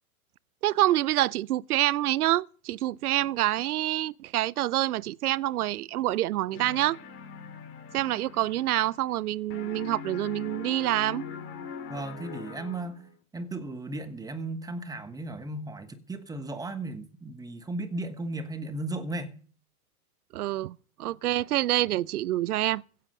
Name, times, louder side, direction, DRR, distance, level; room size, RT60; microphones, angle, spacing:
voice 1, 0.6-7.0 7.9-11.2 20.3-22.8, right 15 dB, 90° right, 0.6 m, -27 dB
sound 1, 6.5-9.3 9.5-13.1, left 6 dB, 30° left, 3.0 m, -42 dB
voice 2, 11.9-19.4, right 2 dB, 10° right, 1.2 m, -36 dB
16.0 x 7.7 x 6.5 m
hypercardioid pair, 130°, 43 cm